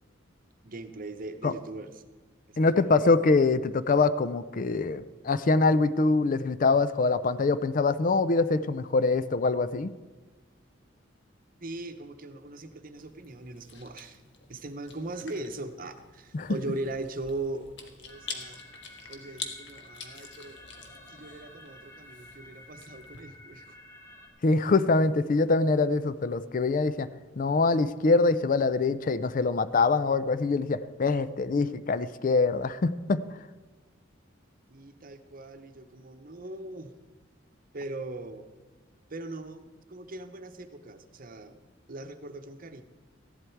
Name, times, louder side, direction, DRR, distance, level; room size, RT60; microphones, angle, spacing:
voice 1, 0.6-2.0 2.5-3.0 11.6-14.2 14.5-18.6 19.1-20.6 21.1-23.8 34.7-36.9 37.7-38.5 39.1-42.8, right 2 dB, 45° right, 8 dB, 0.9 m, -40 dB
voice 2, 2.6-10.0 16.3-16.6 24.4-27.1 27.4-33.3, left 3 dB, 45° left, 14 dB, 0.4 m, -24 dB
Chewing mastication, 13.0-23.2, left 5 dB, 65° left, 1.6 m, -46 dB
sound 1, 18.1-24.3, left 1 dB, 20° left, 1.9 m, -51 dB
15.0 x 11.0 x 4.6 m, 1.3 s
head